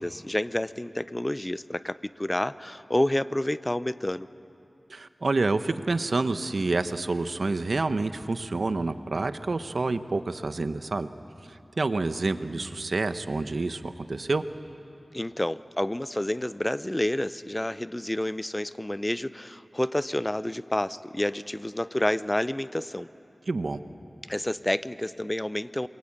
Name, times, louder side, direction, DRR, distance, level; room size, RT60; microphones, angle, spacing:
voice 1, 0.0-4.3 15.1-23.1 24.3-25.9, left 1 dB, 20° left, 15 dB, 0.7 m, -29 dB
voice 2, 4.9-11.1 11.5-14.4 23.5-23.8, right 3 dB, 75° right, 10 dB, 1.0 m, -28 dB
27.0 x 23.5 x 8.8 m, 2.8 s
cardioid pair, 40°, 0 cm